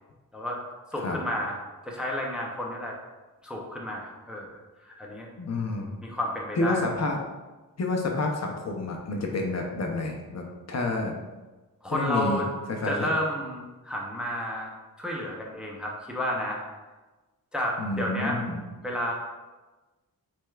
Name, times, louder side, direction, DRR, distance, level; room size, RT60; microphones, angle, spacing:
voice 1, 0.9-1.6 1.8-2.9 3.4-4.6 5.0-5.3 6.0-6.8 11.8-12.5 12.8-14.7 15.0-16.6 17.5-18.4 18.8-19.1, equal, 5° right, -2 dB, 0.5 m, -31 dB
voice 2, 5.4-6.0 6.6-7.2 7.8-11.1 11.9-12.4 12.7-13.1 17.8-18.6, left 2 dB, 50° left, 1 dB, 0.6 m, -29 dB
6.2 x 3.4 x 2.3 m, 1.2 s
wide cardioid pair, 165°, 35 cm